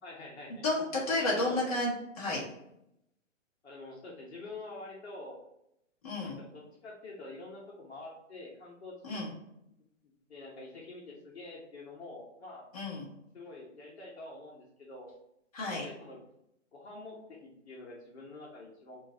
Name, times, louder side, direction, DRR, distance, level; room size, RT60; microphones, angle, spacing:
voice 1, 0.0-0.6 1.2-1.7 3.6-5.4 6.2-9.2 10.3-12.7 13.3-15.1 15.6-16.2 16.7-19.0, left 2 dB, 55° left, -3 dB, 1.1 m, -46 dB
voice 2, 0.6-2.4 6.0-6.4 9.0-9.3 12.7-13.0 15.5-15.8, left 2 dB, 30° left, -5 dB, 1.3 m, -31 dB
4.4 x 2.6 x 4.3 m, 0.80 s
hypercardioid pair, 170°, 38 cm